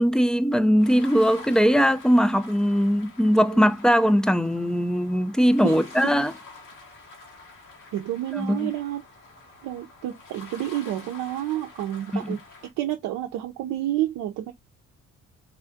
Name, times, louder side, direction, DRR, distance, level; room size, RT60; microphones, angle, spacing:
voice 1, 0.0-6.3 8.3-8.7 12.1-12.3, equal, ahead, 0.3 m, -20 dB
sound 1, 0.8-12.7, left 3 dB, 75° left, 1.2 m, -47 dB
voice 2, 5.6-6.1 7.9-9.0 9.6-12.4 12.8-14.5, right 13 dB, 75° right, 0.5 m, -29 dB
3.4 x 2.3 x 2.5 m
supercardioid pair, 65°, 32 cm